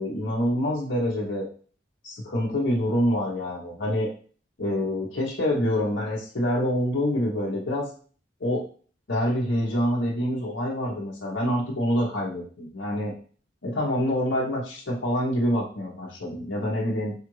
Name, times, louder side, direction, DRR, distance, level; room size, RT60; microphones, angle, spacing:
voice 1, 0.0-1.5 2.0-4.1 4.6-7.9 8.4-8.6 9.1-13.1 13.6-17.1, equal, 75° left, -5 dB, 0.9 m, -26 dB
4.9 x 2.4 x 3.1 m, 0.42 s
head